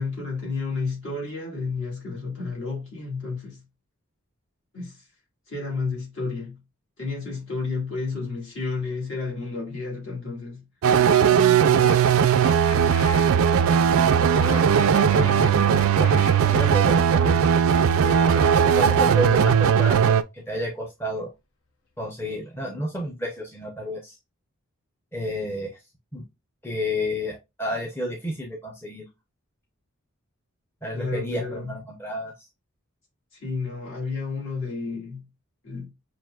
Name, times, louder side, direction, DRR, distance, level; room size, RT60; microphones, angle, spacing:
voice 1, 0.0-3.6 4.7-5.0 5.5-6.6 7.0-10.6 11.2-12.0 15.1-15.4 31.0-31.8 33.4-35.3 35.6-35.9, left 4 dB, 60° left, 2.1 m, -31 dB
sound 1, 10.8-20.2, right 7 dB, 70° right, 0.3 m, -18 dB
sound 2, 11.8-16.5 17.7-19.4, left 4 dB, 75° left, 0.7 m, -40 dB
voice 2, 13.6-14.2 15.1-15.6 16.0-17.6 18.0-21.3 22.0-24.2 25.1-25.8 26.1-26.2 26.6-29.0 30.8-32.3, left 1 dB, 10° left, 0.6 m, -31 dB
6.0 x 2.6 x 2.3 m
head